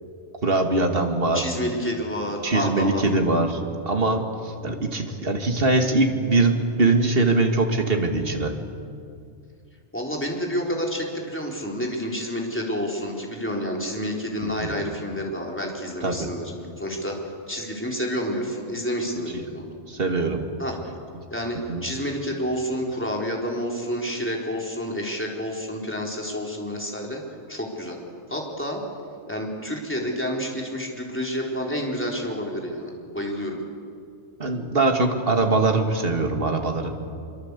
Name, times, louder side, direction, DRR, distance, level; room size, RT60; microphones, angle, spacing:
voice 1, 0.4-1.4 2.4-3.6 3.9-8.5 14.4-14.8 16.0-16.3 19.9-20.5 21.7-21.8 34.4-36.9, right 3 dB, 55° right, 4 dB, 2.5 m, -22 dB
voice 2, 1.3-3.0 9.9-16.5 16.8-17.2 17.5-19.7 20.6-20.8 21.3-27.2 27.5-28.0 28.3-28.8 29.3-33.6, equal, 10° left, -1 dB, 4.1 m, -29 dB
25.5 x 24.0 x 8.4 m, 2.3 s
omnidirectional pair, 1.2 m